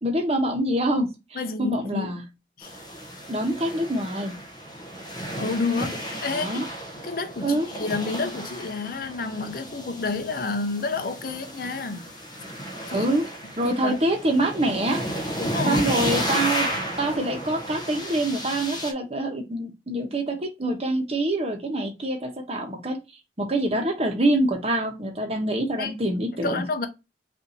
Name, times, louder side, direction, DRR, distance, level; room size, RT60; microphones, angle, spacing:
voice 1, 0.0-2.2 3.3-4.3 6.3-6.7 7.4-7.7 12.9-13.2 13.6-15.0 15.7-16.7 17.0-23.0 23.4-26.6, right 1 dB, 35° right, 1.1 m, -25 dB
voice 2, 1.3-2.2 2.6-2.7 5.4-6.7 7.0-12.1 12.9-13.1 13.6-14.0 15.4-15.8 25.8-25.9 26.4-26.9, left 3 dB, 55° left, 0.7 m, -29 dB
sound 1, 2.6-18.9, equal, 25° left, 0.8 m, -33 dB
5.5 x 2.7 x 2.7 m
head